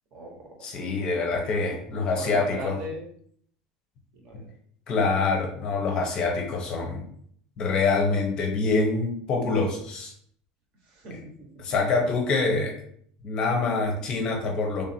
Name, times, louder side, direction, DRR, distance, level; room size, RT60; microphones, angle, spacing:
voice 1, 0.1-0.7 1.9-3.0 4.1-4.5 6.8-6.9 10.8-11.6, right 1 dB, 45° right, 0 dB, 1.0 m, -40 dB
voice 2, 0.6-2.8 4.9-7.0 7.6-10.1 11.6-12.7 13.2-14.8, left 3 dB, 30° left, 2 dB, 0.6 m, -25 dB
3.2 x 2.5 x 4.2 m, 0.63 s
cardioid pair, 170°, 3 cm